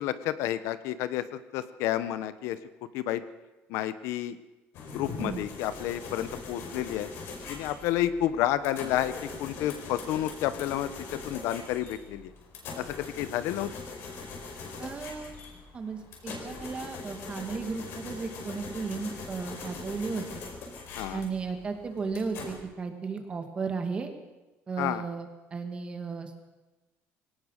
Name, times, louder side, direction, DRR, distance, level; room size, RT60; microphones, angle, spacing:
voice 1, 0.0-2.6 2.9-3.2 3.7-4.4 4.9-7.1 7.5-12.3 12.8-13.7 21.0-21.2 24.8-25.0, left 12 dB, 75° left, 13 dB, 1.1 m, -30 dB
sound 1, 4.7-22.6, left 4 dB, 55° left, 5.1 m, -42 dB
voice 2, 14.8-15.3 15.7-20.5 21.1-24.1 24.7-26.4, right 4 dB, 20° right, 6 dB, 2.2 m, -35 dB
22.0 x 18.5 x 6.6 m, 1.1 s
cardioid pair, 175°, 5 cm